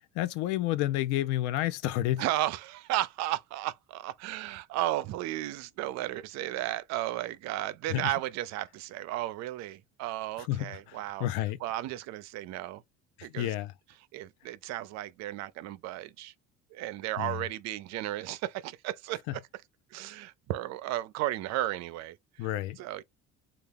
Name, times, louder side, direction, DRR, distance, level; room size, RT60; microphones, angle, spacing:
voice 1, 0.1-2.2 7.9-8.1 10.5-11.6 13.2-13.7 17.2-17.4 19.3-19.4 22.4-22.8, left 14 dB, 80° left, 0.5 m, -30 dB
voice 2, 2.2-11.3 11.6-12.8 13.2-13.5 14.1-16.3 16.7-19.4 19.9-22.5 22.8-23.0, right 15 dB, 65° right, 0.5 m, -34 dB
3.3 x 2.4 x 3.6 m
cardioid pair, 105°, 29 cm